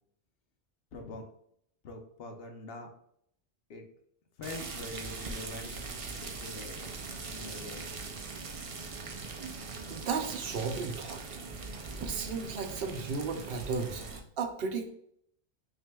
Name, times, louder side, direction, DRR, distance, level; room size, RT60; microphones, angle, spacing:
voice 1, 0.9-1.2 1.8-2.9 3.7-3.8 4.4-5.7 6.2-6.8 7.3-7.9, left 2 dB, 65° left, 4 dB, 0.9 m, -44 dB
sound 1, 4.4-14.2, right 4 dB, 50° right, 0.4 m, -41 dB
voice 2, 9.9-11.2 12.0-14.0 14.4-14.9, right 5 dB, 70° right, 5 dB, 0.8 m, -34 dB
5.7 x 2.6 x 2.2 m, 0.68 s
omnidirectional pair, 1.1 m